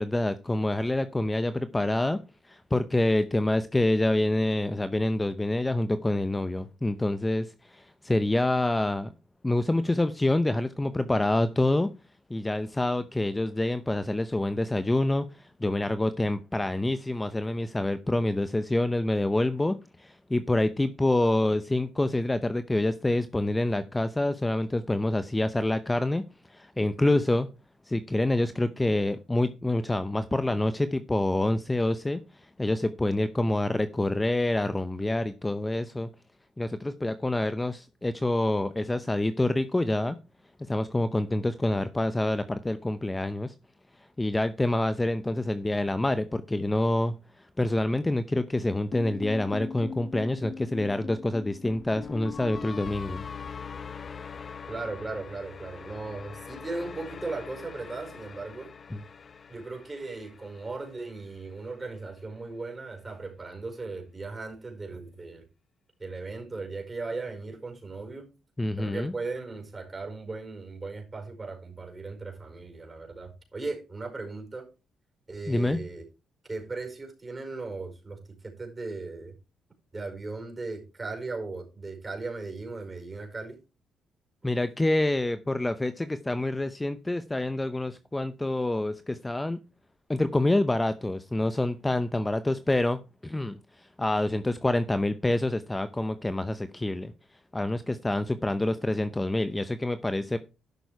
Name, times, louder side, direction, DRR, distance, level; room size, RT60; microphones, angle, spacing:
voice 1, 0.0-2.2 2.5-9.1 9.4-11.9 12.3-27.5 27.9-36.1 36.6-40.2 40.7-43.5 44.2-47.1 47.6-53.2 58.9-59.0 68.6-69.1 75.5-75.8 84.4-89.6 90.1-97.1 97.5-100.4, left 1 dB, 15° left, 11 dB, 0.7 m, -27 dB
sound 1, 48.9-61.1, left 6 dB, 40° left, 0.8 m, -41 dB
voice 2, 54.7-58.7 59.5-65.4 66.0-68.3 68.8-74.6 75.3-76.1 76.5-79.3 79.9-83.6, right 3 dB, 25° right, 3 dB, 5.0 m, -37 dB
12.0 x 6.3 x 4.7 m, 0.30 s
cardioid pair, 90°, 0 cm